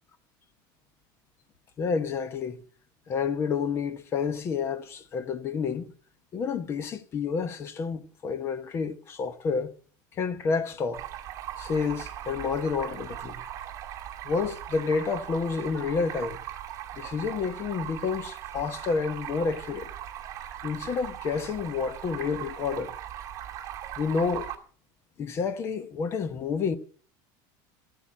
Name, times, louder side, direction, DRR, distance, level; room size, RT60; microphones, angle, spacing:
voice 1, 1.8-2.6 3.1-5.9 6.3-9.7 10.2-11.0 11.6-13.4 14.2-16.4 16.9-19.9 20.6-22.9 24.0-24.5 25.2-26.8, left 5 dB, 25° left, 0.9 m, -29 dB
Stream, 10.9-24.6, right 11 dB, 30° right, 1.9 m, -39 dB
13.5 x 8.6 x 7.3 m
cardioid pair, 180°, 10 cm